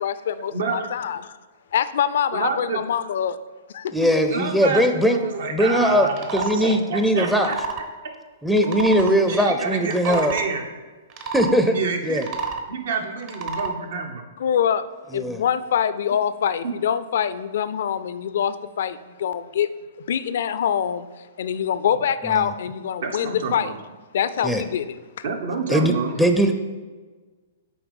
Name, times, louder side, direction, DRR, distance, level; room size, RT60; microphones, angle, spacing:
voice 1, 0.0-1.4 1.7-3.4 3.7-4.1 14.4-14.9 15.1-19.8 20.1-23.7 24.1-25.0, left 8 dB, 70° left, 14 dB, 0.4 m, -24 dB
voice 2, 0.5-0.9 2.3-2.8 4.3-7.6 9.0-10.6 11.7-12.2 12.7-14.3 16.6-16.7 23.0-23.8 25.2-26.1, right 5 dB, 70° right, 4 dB, 1.1 m, -28 dB
voice 3, 3.9-5.2 5.5-6.1 6.3-7.5 8.4-10.4 11.3-11.8 12.0-12.2 15.1-15.4 22.2-22.5 24.4-24.6 25.7-25.9 26.2-26.6, equal, ahead, 6 dB, 0.5 m, -20 dB
sound 1, 6.1-6.6 7.2-7.9 8.5-9.2 9.8-10.5 11.1-11.5 12.1-12.7 13.2-13.7, right 4 dB, 40° right, 0.9 m, -30 dB
7.0 x 4.5 x 5.3 m, 1.3 s
hypercardioid pair, 130°, 0 cm